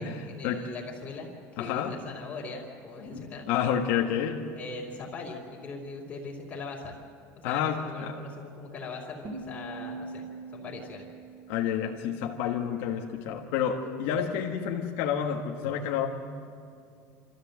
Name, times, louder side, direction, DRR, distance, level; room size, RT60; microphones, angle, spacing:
voice 1, 0.0-3.5 4.2-7.0 7.4-10.2 10.5-11.1 14.1-14.3, left 3 dB, 25° left, -6 dB, 2.8 m, -41 dB
voice 2, 1.6-2.0 3.5-4.5 7.4-8.1 11.5-16.1, left 8 dB, 65° left, 0 dB, 1.5 m, -29 dB
sound 1, 9.2-12.2, right 3 dB, 30° right, 2.7 m, -42 dB
28.5 x 14.0 x 7.8 m, 2.4 s
cardioid pair, 175°, 7 cm